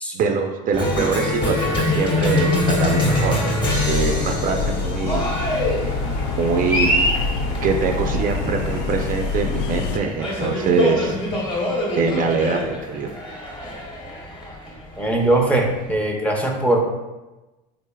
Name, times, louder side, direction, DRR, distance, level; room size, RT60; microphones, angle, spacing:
voice 1, 0.1-3.4 3.9-5.2 6.4-6.9 7.6-11.2 12.0-13.1, right 5 dB, 40° right, 4 dB, 0.4 m, -23 dB
Cheering, 0.7-15.9, left 1 dB, 25° left, 1.0 m, -24 dB
sound 1, 3.6-10.0, left 3 dB, 70° left, 0.4 m, -26 dB
voice 2, 15.0-16.8, right 1 dB, 5° left, 0 dB, 0.5 m, -20 dB
3.7 x 3.3 x 2.2 m, 1.1 s
supercardioid pair, 105°, 21 cm